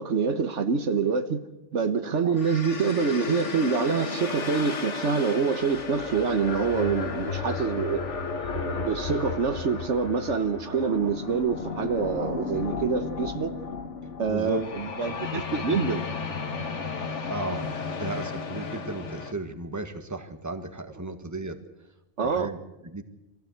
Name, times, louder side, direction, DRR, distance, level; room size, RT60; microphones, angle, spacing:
voice 1, 0.0-1.4 1.7-8.0 8.5-13.5 14.2-16.1 22.2-22.5, right 5 dB, 70° right, 1.5 m, -26 dB
sound 1, 2.3-19.3, left 4 dB, 70° left, 1.8 m, -33 dB
voice 2, 14.3-14.6 15.2-15.4 17.3-17.7 18.0-21.6 22.2-22.6 22.8-23.0, right 2 dB, 15° right, 1.6 m, -35 dB
24.0 x 15.5 x 8.0 m
omnidirectional pair, 1.3 m